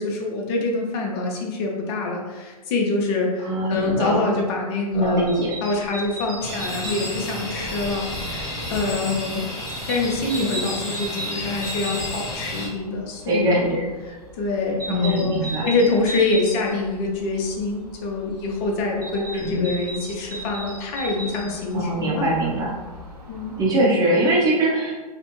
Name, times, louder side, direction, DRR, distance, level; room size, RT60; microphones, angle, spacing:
voice 1, 0.0-9.5 9.9-13.7 14.0-22.3 23.3-23.6, left 3 dB, 40° left, 0 dB, 0.6 m, -25 dB
voice 2, 3.4-4.3 4.9-5.5 13.3-13.8 14.9-15.7 19.4-19.7 21.7-22.8 23.6-24.9, right 1 dB, 20° right, -3 dB, 0.7 m, -22 dB
sound 1, 4.9-23.7, right 1 dB, 75° right, 1.0 m, -38 dB
sound 2, 6.4-12.7, left 1 dB, 15° left, 1.1 m, -31 dB
2.4 x 2.1 x 3.0 m, 1.2 s
hypercardioid pair, 115°, 20 cm